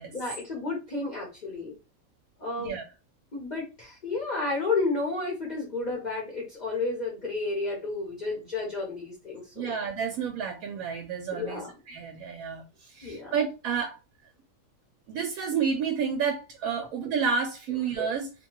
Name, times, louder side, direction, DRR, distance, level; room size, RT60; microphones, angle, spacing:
voice 1, 0.1-1.7 2.4-2.7 3.3-9.7 11.3-11.7 13.0-13.3, left 3 dB, 40° left, 0.8 m, -31 dB
voice 2, 9.6-14.0 15.1-18.3, right 6 dB, 85° right, 1.0 m, -30 dB
2.8 x 2.2 x 2.9 m
omnidirectional pair, 1.4 m